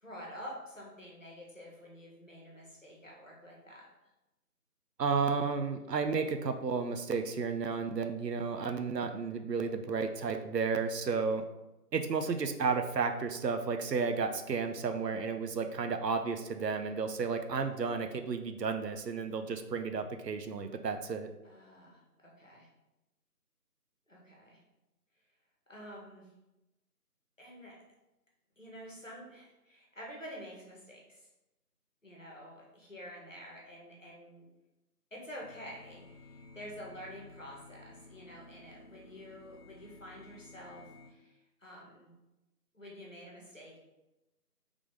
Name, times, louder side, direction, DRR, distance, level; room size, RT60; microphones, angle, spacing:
voice 1, 0.0-3.9 21.4-22.7 24.1-24.6 25.7-26.3 27.4-27.8 28.6-31.3 32.0-34.5 35.1-42.1 42.7-43.8, equal, 50° left, -3 dB, 1.2 m, -49 dB
voice 2, 5.0-11.4 11.9-21.3, right 5 dB, 85° right, 7 dB, 0.6 m, -32 dB
sound 1, 35.4-41.1, left 3 dB, 75° left, 0.7 m, -54 dB
3.5 x 3.2 x 3.7 m, 0.98 s
figure-of-eight pair, 180°, 48 cm